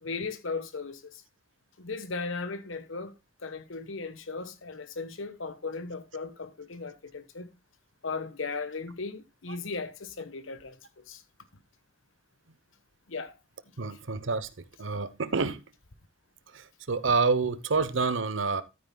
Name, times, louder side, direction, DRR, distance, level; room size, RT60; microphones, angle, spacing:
voice 1, 0.0-1.2 1.8-3.1 3.4-7.5 8.0-11.2 13.1-13.3, left 4 dB, 85° left, 1.2 m, -37 dB
voice 2, 13.8-14.5 14.8-15.6 16.5-18.6, right 4 dB, 75° right, 0.9 m, -28 dB
13.0 x 9.2 x 2.2 m
head